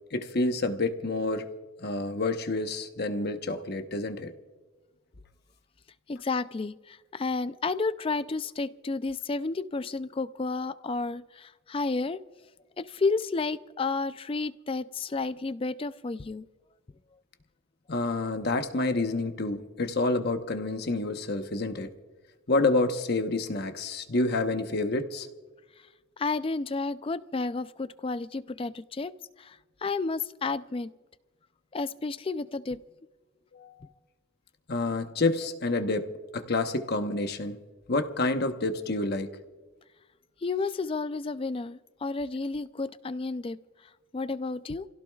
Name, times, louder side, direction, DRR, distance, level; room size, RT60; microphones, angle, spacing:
voice 1, 0.1-1.5 1.8-4.3 17.9-21.9 22.5-25.3 33.5-33.7 34.7-37.6 37.9-39.3, left 2 dB, 50° left, 7 dB, 1.0 m, -28 dB
voice 2, 6.1-12.2 12.8-16.5 26.2-30.9 31.7-32.8 40.4-43.6 44.1-44.9, left 3 dB, 25° left, 14 dB, 0.4 m, -31 dB
29.0 x 16.5 x 2.4 m, 1.3 s
head